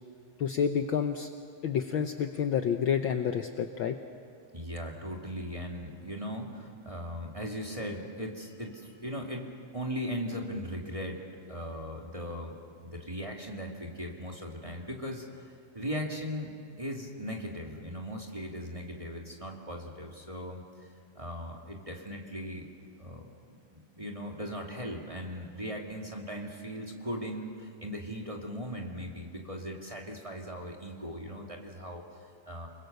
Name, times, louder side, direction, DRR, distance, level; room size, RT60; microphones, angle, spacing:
voice 1, 0.4-1.3 1.6-4.0, left 8 dB, 85° left, 6 dB, 1.1 m, -29 dB
voice 2, 4.5-9.5 9.7-11.2 11.5-16.5 16.8-20.9 21.2-22.7 23.0-32.7, equal, 15° right, 0 dB, 1.9 m, -38 dB
30.0 x 21.5 x 6.8 m, 2.3 s
omnidirectional pair, 3.3 m